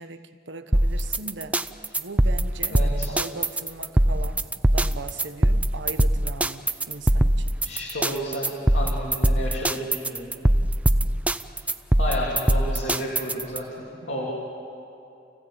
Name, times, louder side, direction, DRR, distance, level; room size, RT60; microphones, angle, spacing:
voice 1, 0.0-1.6 2.0-4.5 4.7-7.5 10.9-11.3 14.0-14.3, right 2 dB, 85° right, 9 dB, 1.2 m, -39 dB
sound 1, 0.7-13.6, right 1 dB, 10° right, 0.5 m, -22 dB
voice 2, 2.7-3.2 7.6-10.3 12.0-13.7 14.1-14.3, equal, 75° left, -4 dB, 3.2 m, -31 dB
29.0 x 15.5 x 8.8 m, 2.8 s
head